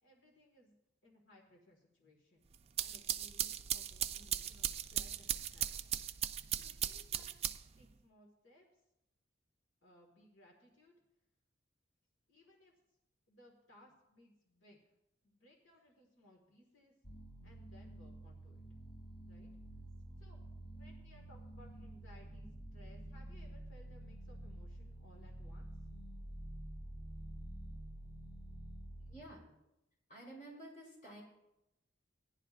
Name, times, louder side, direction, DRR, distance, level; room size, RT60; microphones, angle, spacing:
voice 1, 0.0-0.8 1.0-2.5 2.8-5.9 6.6-7.4 7.8-8.8 9.8-11.0 12.3-12.7 13.3-14.8 15.2-16.9 17.4-18.6 19.3-19.5 20.2-20.4 20.7-25.8, left 1 dB, 90° left, -1 dB, 1.7 m, -64 dB
sound 1, 2.5-7.8, right 10 dB, 30° right, 0.3 m, -38 dB
sound 2, 17.0-29.2, right 1 dB, 25° left, 1.3 m, -49 dB
voice 2, 29.1-29.5 30.1-31.2, right 1 dB, 45° left, -4 dB, 5.0 m, -51 dB
18.0 x 11.0 x 2.5 m, 0.92 s
head